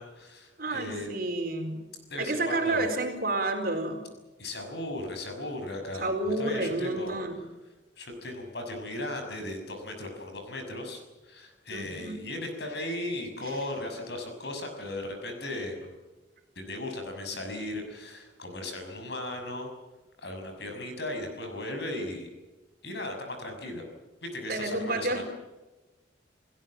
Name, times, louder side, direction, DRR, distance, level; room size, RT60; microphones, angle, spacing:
voice 1, 0.0-1.1 2.1-2.9 4.4-7.2 8.0-16.0 16.5-19.7 20.2-22.3 22.8-23.8 24.2-25.2, left 1 dB, 60° left, 5 dB, 6.3 m, -37 dB
voice 2, 0.6-1.8 2.2-4.0 6.0-7.4 11.7-12.2 24.5-25.2, right 2 dB, 50° right, 5 dB, 4.4 m, -30 dB
30.0 x 17.0 x 7.7 m, 1.1 s
head